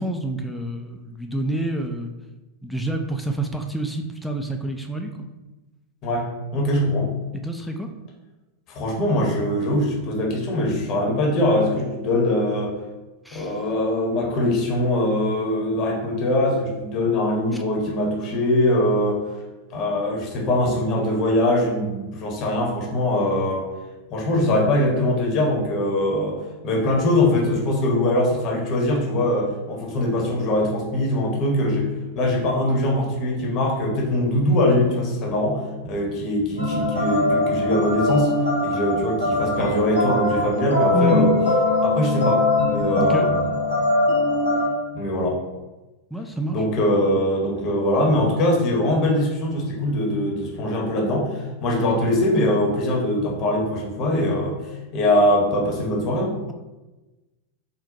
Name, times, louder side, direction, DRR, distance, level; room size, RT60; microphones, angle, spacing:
voice 1, 0.0-2.1 2.6-5.3 7.4-7.9 13.3-13.5 40.9-41.3 43.0-43.3 46.1-46.6, right 1 dB, ahead, 3 dB, 0.3 m, -27 dB
voice 2, 6.0-7.1 8.7-12.7 13.3-19.2 19.7-23.7 24.1-26.4 26.6-38.3 38.6-41.3 41.8-43.5 44.9-45.4 46.5-54.6 54.9-56.4, left 1 dB, 35° left, -1 dB, 0.8 m, -22 dB
sound 1, 36.6-44.7, left 2 dB, 85° right, 1.0 m, -21 dB
3.8 x 2.1 x 2.8 m, 1.1 s
figure-of-eight pair, 90°, 0 cm